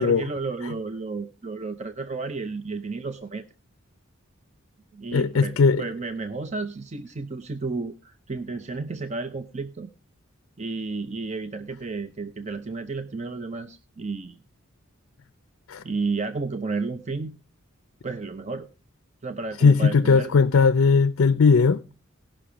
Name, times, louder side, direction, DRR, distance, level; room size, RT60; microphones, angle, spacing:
voice 1, 0.0-3.4 4.9-9.9 10.6-14.4 15.8-17.4 18.0-18.7 19.2-20.3, right 4 dB, 30° right, 0.5 m, -32 dB
voice 2, 5.1-5.8 15.7-15.8 19.6-21.8, left 5 dB, 65° left, 0.5 m, -18 dB
17.0 x 6.0 x 4.9 m
head